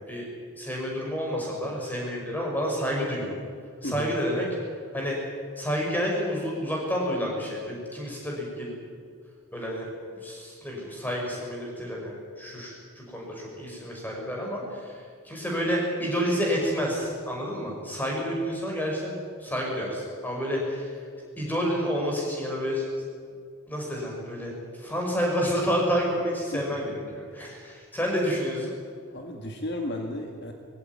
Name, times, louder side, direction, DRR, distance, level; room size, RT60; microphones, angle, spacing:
voice 1, 0.6-3.3 3.8-4.5 4.9-5.2 5.6-8.7 9.5-9.9 10.2-20.9 21.4-22.9 23.7-28.7, equal, 10° left, -2 dB, 5.7 m, -29 dB
voice 2, 3.8-4.1 26.5-26.8 29.1-30.5, left 1 dB, 50° left, 3 dB, 1.9 m, -34 dB
21.0 x 16.0 x 9.6 m, 2.2 s
head